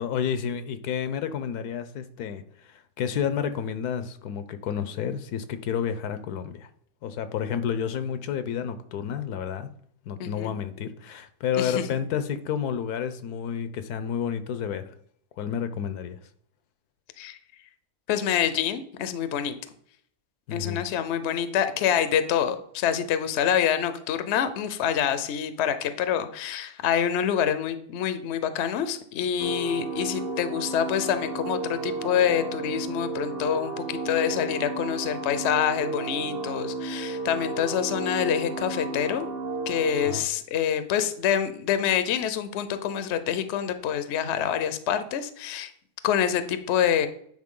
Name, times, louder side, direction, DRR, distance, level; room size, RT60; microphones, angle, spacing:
voice 1, 0.0-6.7 7.0-9.7 10.1-14.9 15.4-16.2 20.5-20.8 40.0-40.2, left 8 dB, 80° left, 11 dB, 1.2 m, -30 dB
voice 2, 10.2-10.5 11.6-11.9 17.2-17.4 18.1-19.5 20.5-39.3 39.7-45.7 46.0-47.1, left 9 dB, 60° left, 11 dB, 0.8 m, -26 dB
sound 1, 29.4-40.2, right 3 dB, 60° right, 2.3 m, -33 dB
9.6 x 4.4 x 3.7 m, 0.63 s
omnidirectional pair, 1.7 m